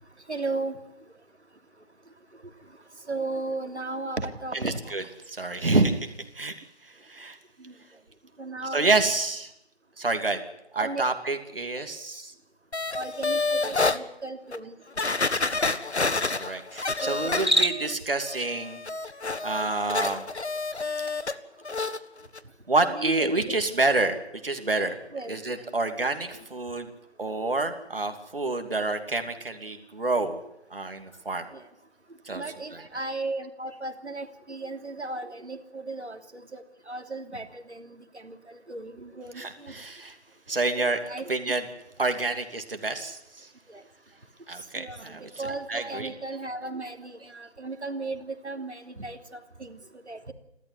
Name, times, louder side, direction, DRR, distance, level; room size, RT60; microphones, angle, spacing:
voice 1, 0.3-0.8 3.1-4.8 7.6-7.7 8.4-8.9 10.7-11.0 12.9-15.0 17.0-17.3 22.9-23.6 25.1-25.3 26.1-26.2 31.5-31.6 32.3-39.7 40.8-41.3 43.7-43.8 44.8-49.8 50.1-50.3, right 3 dB, 85° right, 6 dB, 3.2 m, -35 dB
voice 2, 4.5-7.4 8.7-9.5 10.0-10.4 10.7-12.3 15.4-15.7 16.2-18.8 19.4-20.3 22.7-25.0 25.3-26.9 27.2-30.4 30.7-31.5 32.2-32.4 32.7-33.0 39.4-40.2 40.5-41.0 41.3-41.7 42.0-43.5 44.5-46.1, right 2 dB, 55° right, 6 dB, 2.8 m, -28 dB
sound 1, 12.7-14.0 14.5-14.6 15.0-17.9 18.3-21.4 21.6-22.0 22.3-22.4, left 3 dB, 75° left, 1.6 m, -29 dB
Cricket, 17.3-18.0, equal, 25° right, 1.0 m, -25 dB
29.5 x 13.0 x 9.7 m, 0.81 s
figure-of-eight pair, 175°, 33 cm